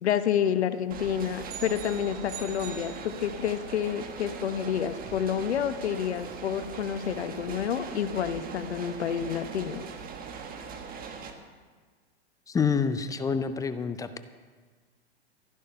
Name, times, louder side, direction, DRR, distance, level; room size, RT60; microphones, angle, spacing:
voice 1, 0.0-9.8, left 9 dB, 75° left, 11 dB, 1.0 m, -29 dB
sound 1, 0.9-11.3, right 5 dB, 25° right, 1.5 m, -41 dB
sound 2, 1.5-3.7, right 8 dB, 50° right, 1.9 m, -44 dB
voice 2, 12.5-14.2, left 6 dB, 10° left, 11 dB, 0.4 m, -27 dB
13.5 x 11.0 x 5.6 m, 1.5 s
hypercardioid pair, 110°, 33 cm